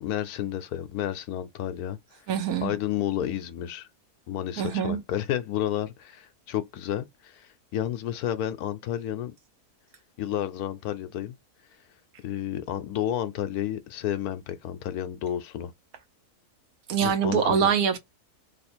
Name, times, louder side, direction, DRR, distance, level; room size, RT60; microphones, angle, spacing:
voice 1, 0.0-2.0 2.6-3.9 4.3-9.3 10.2-11.4 12.2-15.7 17.0-17.7, left 11 dB, 75° left, 1.0 m, -31 dB
voice 2, 2.3-2.7 4.6-5.0 16.9-18.0, right 7 dB, 70° right, 1.2 m, -24 dB
3.0 x 2.4 x 4.3 m
omnidirectional pair, 1.7 m